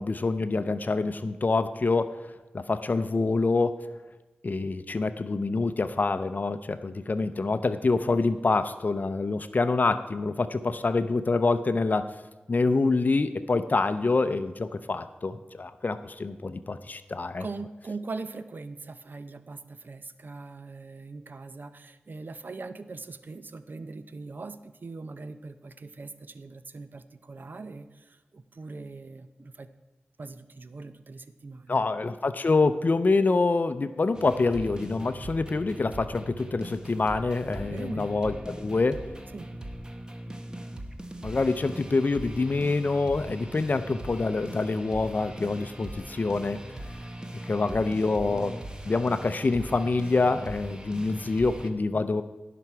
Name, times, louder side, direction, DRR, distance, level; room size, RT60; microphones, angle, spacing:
voice 1, 0.0-2.2 2.5-3.8 4.4-12.1 12.5-17.4 31.7-39.0 41.2-46.6 47.5-48.6 48.8-52.2, left 3 dB, 50° left, 11 dB, 0.5 m, -26 dB
voice 2, 17.4-29.7 30.2-31.9 37.5-38.1 39.3-39.5, right 3 dB, 60° right, 11 dB, 0.6 m, -41 dB
sound 1, 34.1-51.7, right 1 dB, 20° right, 1.1 m, -41 dB
17.0 x 5.9 x 4.6 m, 1.1 s
cardioid pair, 55°, 4 cm